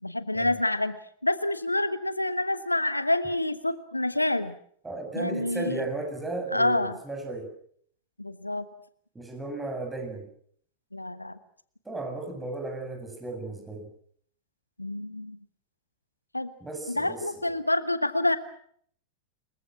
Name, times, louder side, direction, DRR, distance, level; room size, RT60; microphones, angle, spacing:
voice 1, 0.0-1.0 1.2-4.5 5.1-5.8 6.5-7.0 8.2-8.6 10.9-11.4 14.8-15.4 16.3-16.5 16.9-18.4, left 1 dB, 85° left, 13 dB, 1.2 m, -27 dB
voice 2, 4.8-7.5 9.1-10.3 11.8-13.9 16.6-17.2, right 2 dB, 10° right, 5 dB, 7.7 m, -35 dB
27.5 x 22.5 x 6.1 m, 0.63 s
figure-of-eight pair, 90°, 0 cm